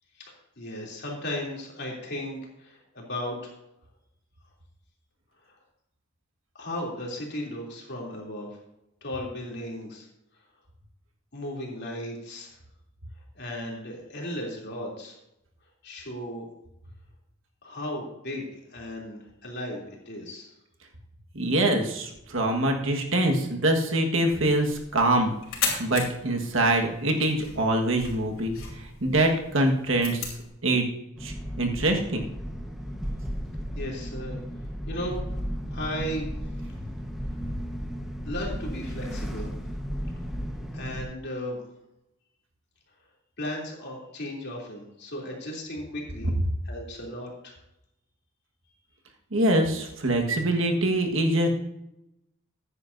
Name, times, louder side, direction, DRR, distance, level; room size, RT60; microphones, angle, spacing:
voice 1, 0.2-3.5 6.6-8.6 9.0-10.1 11.3-12.5 13.3-15.2 15.8-16.4 17.6-20.5 33.7-34.4 34.9-35.2 35.7-36.3 38.2-39.5 40.7-41.6 43.4-46.3 46.6-47.6, left 1 dB, 55° left, -1 dB, 3.0 m, -35 dB
voice 2, 21.3-25.3 25.8-30.3 30.6-30.9 31.2-32.2 49.3-51.5, right 1 dB, 65° right, 2 dB, 1.6 m, -24 dB
sound 1, 24.7-30.5, left 5 dB, 85° left, 3.1 m, -37 dB
sound 2, 31.2-41.0, equal, ahead, 1.2 m, -34 dB
15.0 x 9.8 x 2.7 m, 0.86 s
head